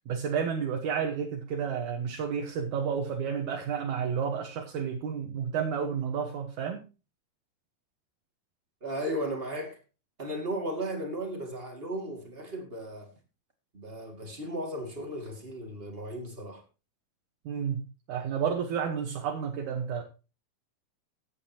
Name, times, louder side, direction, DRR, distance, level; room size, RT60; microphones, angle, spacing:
voice 1, 0.1-6.8 17.5-20.0, right 7 dB, 65° right, 2.2 m, -31 dB
voice 2, 8.8-9.8 10.2-13.1 13.7-16.6, right 1 dB, 25° right, 1.3 m, -35 dB
15.5 x 9.2 x 2.8 m
omnidirectional pair, 4.5 m